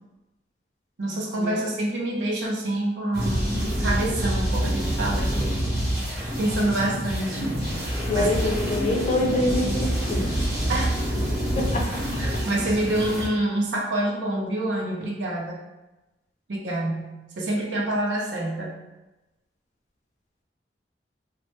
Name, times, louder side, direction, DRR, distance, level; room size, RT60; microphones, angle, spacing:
voice 1, 1.0-5.6 6.4-7.6 8.1-8.3 10.7-10.9 12.2-15.6 16.5-18.7, right 1 dB, 85° right, -2 dB, 0.5 m, -27 dB
sound 1, 3.1-13.3, equal, 55° right, 0.8 m, -26 dB
voice 2, 8.1-10.4 11.5-11.9 12.3-12.4, left 1 dB, 40° left, -1 dB, 0.4 m, -25 dB
2.1 x 2.0 x 2.9 m, 1.0 s
head